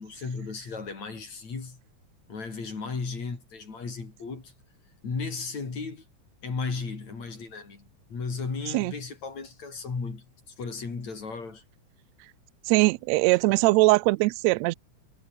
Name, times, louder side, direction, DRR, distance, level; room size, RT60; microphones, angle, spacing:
voice 1, 0.0-1.8 2.3-4.5 5.0-6.0 6.4-11.6, left 4 dB, 65° left, 6.4 m, -35 dB
voice 2, 12.7-14.7, right 22 dB, 80° right, 1.6 m, -21 dB
omnidirectional pair, 3.4 m